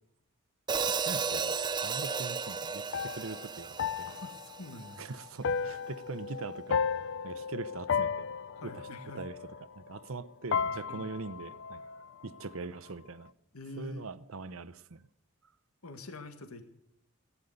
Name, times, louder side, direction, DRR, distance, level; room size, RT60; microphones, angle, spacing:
Hi-hat, 0.7-4.9, right 5 dB, 20° right, 0.5 m, -34 dB
voice 1, 0.9-4.1 5.0-6.8 7.2-8.3 8.6-8.9 9.1-11.8 12.2-13.3 13.8-15.1, right 3 dB, 65° right, 14 dB, 0.8 m, -42 dB
sound 1, 1.3-10.2 10.5-12.6, left 6 dB, 55° left, 0.4 m, -35 dB
voice 2, 4.1-5.1 8.5-9.2 10.9-11.1 13.5-14.0 15.8-16.6, left 2 dB, 85° left, 8 dB, 1.7 m, -46 dB
18.5 x 10.5 x 6.7 m, 0.84 s
head